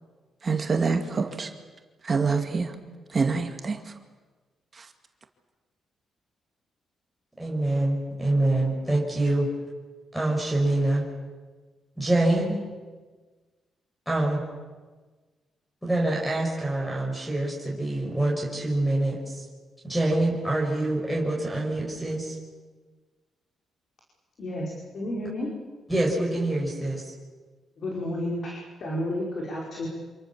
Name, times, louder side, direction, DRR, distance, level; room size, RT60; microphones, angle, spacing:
voice 1, 0.4-1.5 2.0-2.7 3.1-3.8 4.8-4.9, right 4 dB, 35° right, 5 dB, 2.2 m, -26 dB
voice 2, 7.4-9.5 10.1-11.1 12.0-12.6 14.1-14.4 15.8-19.4 19.8-22.4 25.9-27.1, right 2 dB, ahead, -1 dB, 5.8 m, -25 dB
voice 3, 24.4-25.5 27.8-29.9, left 1 dB, 55° left, -2 dB, 5.4 m, -31 dB
28.5 x 27.0 x 7.3 m, 1.3 s
cardioid pair, 115°, 0 cm